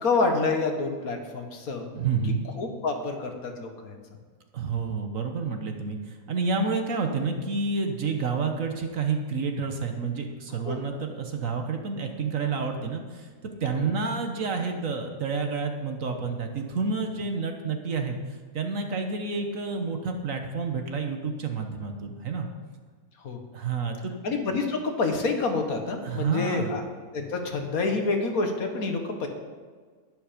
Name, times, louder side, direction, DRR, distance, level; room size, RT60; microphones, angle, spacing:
voice 1, 0.0-1.9 2.6-4.0 10.6-10.8 13.7-13.8 23.2-23.4 24.2-26.8 27.1-29.3, left 3 dB, 60° left, 4 dB, 1.8 m, -27 dB
voice 2, 1.9-2.4 4.5-18.2 18.5-22.5 23.5-24.1 26.0-26.8, right 4 dB, 55° right, 5 dB, 1.4 m, -29 dB
11.0 x 10.5 x 5.1 m, 1.5 s
omnidirectional pair, 1.8 m